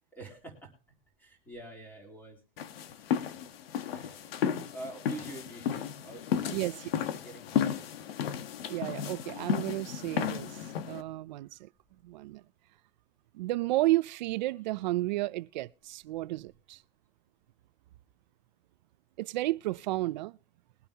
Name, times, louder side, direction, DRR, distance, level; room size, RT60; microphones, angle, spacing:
voice 1, 0.2-0.7 1.2-2.4 3.9-4.2 4.7-7.9, right 2 dB, 5° left, 3.6 m, -46 dB
sound 1, 2.6-11.0, left 9 dB, 80° left, 1.4 m, -33 dB
voice 2, 6.5-7.0 8.7-11.7 12.0-12.4 13.3-16.8 19.2-20.4, right 17 dB, 50° right, 0.5 m, -32 dB
22.0 x 9.0 x 2.9 m
supercardioid pair, 170°, 30 cm